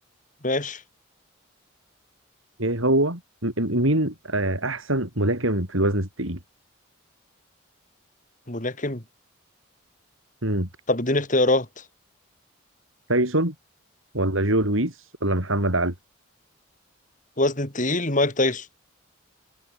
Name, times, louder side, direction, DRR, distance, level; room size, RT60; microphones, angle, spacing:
voice 1, 0.4-0.8 8.5-9.0 10.9-11.7 17.4-18.7, left 2 dB, 40° left, 3.7 m, -23 dB
voice 2, 2.6-6.4 10.4-10.7 13.1-13.5 14.1-15.9, right 1 dB, 80° right, 7.3 m, -24 dB
head